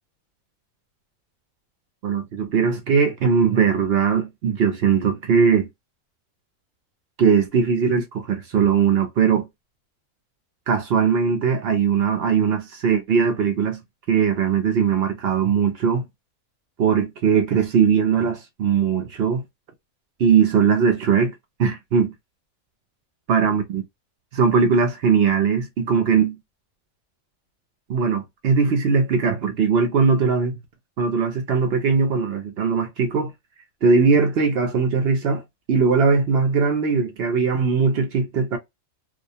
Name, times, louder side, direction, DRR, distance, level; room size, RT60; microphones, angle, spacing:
voice 1, 2.0-5.7 7.2-9.5 10.7-13.8 14.1-16.1 16.8-19.4 20.2-22.1 23.3-23.8 24.3-26.4 27.9-30.6 31.0-33.3 33.8-35.4 35.7-38.6, right 6 dB, 65° right, 0.7 m, -20 dB
2.3 x 2.0 x 2.7 m
omnidirectional pair, 1.4 m